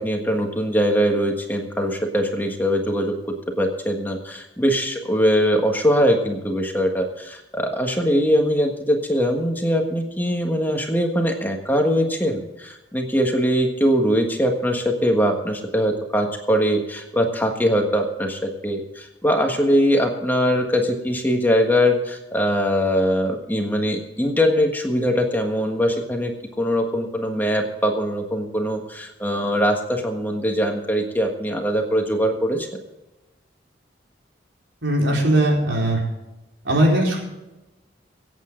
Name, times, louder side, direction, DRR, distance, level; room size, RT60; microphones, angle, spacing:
voice 1, 0.0-3.1 3.6-32.7, equal, 10° left, 2 dB, 1.5 m, -22 dB
voice 2, 34.8-36.0 36.6-37.2, right 1 dB, 85° right, -2 dB, 4.6 m, -19 dB
24.5 x 8.5 x 3.8 m, 1.0 s
head